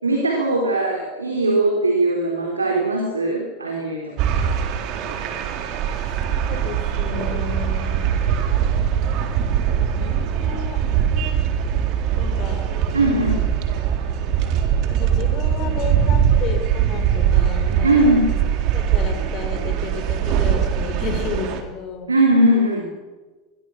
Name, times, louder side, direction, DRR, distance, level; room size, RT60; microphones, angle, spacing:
voice 1, 0.0-4.3 12.9-13.4 17.8-18.3 22.1-22.9, right 1 dB, 85° right, 1 dB, 3.8 m, -19 dB
sound 1, 4.2-21.6, right 8 dB, 50° right, 3.8 m, -21 dB
voice 2, 5.9-8.1 9.9-10.8 12.1-12.8 14.9-18.2 18.7-22.1, left 6 dB, 45° left, 7 dB, 4.9 m, -33 dB
28.0 x 22.0 x 6.6 m, 1.3 s
figure-of-eight pair, 80°, 0 cm